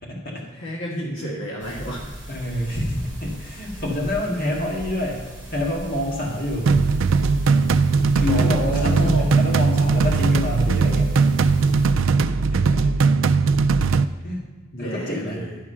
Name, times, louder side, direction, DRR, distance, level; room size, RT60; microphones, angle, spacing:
voice 1, 0.0-0.4 2.3-5.2 5.5-6.7 8.2-11.1 12.5-12.9 14.2-14.4 14.8-15.5, left 1 dB, 45° left, -3 dB, 1.9 m, -27 dB
voice 2, 0.5-2.0 8.3-9.3 14.7-15.6, right 1 dB, 65° left, -3 dB, 1.5 m, -30 dB
sound 1, 1.6-11.9, equal, 5° right, 2.9 m, -38 dB
sound 2, 6.7-14.0, right 4 dB, 70° right, 0.4 m, -19 dB
11.0 x 4.8 x 5.6 m, 1.3 s
head